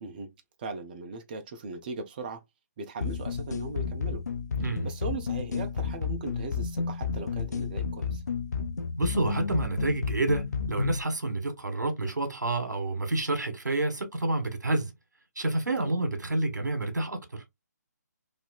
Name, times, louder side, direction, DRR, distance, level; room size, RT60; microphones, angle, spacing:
voice 1, 0.0-0.3 0.6-2.4 2.8-4.2 4.8-8.2 15.8-15.9, right 4 dB, 30° right, 0.6 m, -38 dB
sound 1, 3.0-11.0, left 5 dB, 65° left, 0.5 m, -31 dB
voice 2, 9.0-14.9 15.3-17.4, right 2 dB, 80° right, 1.4 m, -29 dB
3.1 x 2.7 x 2.4 m
figure-of-eight pair, 150°, 10 cm